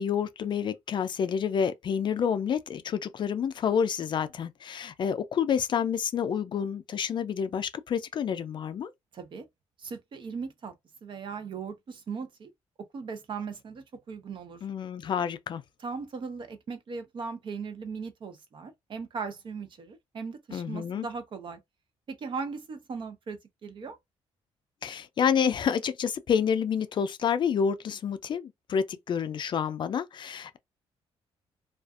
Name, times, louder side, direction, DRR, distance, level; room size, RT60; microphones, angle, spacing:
voice 1, 0.0-8.9 14.6-15.6 20.5-21.1 24.8-30.6, left 7 dB, 45° left, 0.4 m, -29 dB
voice 2, 9.1-9.5 9.8-10.7 11.0-12.5 12.9-14.6 15.8-21.6 22.1-24.0, right 5 dB, 45° right, 0.7 m, -38 dB
2.5 x 2.3 x 2.4 m
cardioid pair, 105°, 11 cm